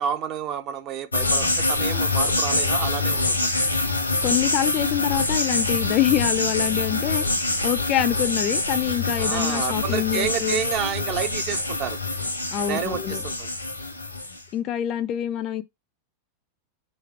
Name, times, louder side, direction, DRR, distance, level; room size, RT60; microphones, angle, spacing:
voice 1, 0.0-3.5 9.2-12.0 12.7-13.5, right 9 dB, 35° right, 0.6 m, -30 dB
sound 1, 1.1-14.4, left 2 dB, 85° left, 0.9 m, -25 dB
voice 2, 4.2-7.2 7.6-10.6 12.5-13.2 14.5-15.6, left 12 dB, 35° left, 0.4 m, -25 dB
3.4 x 3.3 x 4.2 m
figure-of-eight pair, 90°, 0 cm